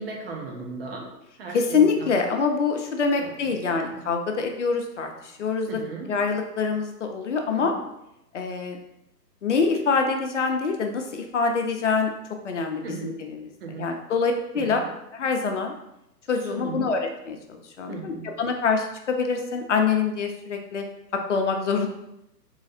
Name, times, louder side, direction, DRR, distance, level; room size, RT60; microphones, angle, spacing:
voice 1, 0.0-2.3 3.2-3.5 3.9-4.1 5.7-6.1 7.5-7.8 12.8-13.2 13.6-14.0 14.5-14.9 16.5-16.9 17.9-18.3, right 4 dB, 35° right, 1 dB, 0.8 m, -37 dB
voice 2, 1.5-5.8 6.1-7.7 8.3-8.8 9.4-12.1 12.4-13.5 13.8-14.8 15.1-15.7 16.3-17.0 17.3-20.8 21.3-21.9, left 5 dB, 45° left, 4 dB, 0.6 m, -25 dB
3.9 x 3.1 x 4.2 m, 0.85 s
hypercardioid pair, 140°, 50 cm